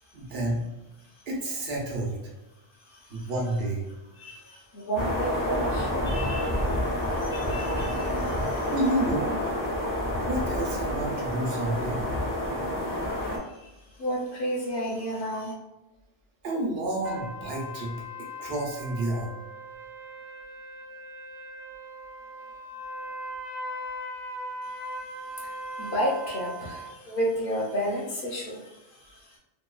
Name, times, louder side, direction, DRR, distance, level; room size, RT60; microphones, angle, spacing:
voice 1, 0.1-0.6 1.3-2.1 3.1-3.8 8.7-9.4 10.3-12.0 16.4-17.9 18.4-19.3, right 1 dB, 70° right, -2 dB, 0.9 m, -29 dB
voice 2, 2.8-3.3 4.2-8.7 13.4-13.7 14.0-15.5 25.1-29.4, equal, 60° left, -2 dB, 0.7 m, -32 dB
sound 1, 5.0-13.4, left 1 dB, 30° left, 0.4 m, -28 dB
sound 2, 17.0-26.9, equal, 55° right, 0.6 m, -39 dB
2.7 x 2.2 x 2.2 m, 0.99 s
omnidirectional pair, 1.1 m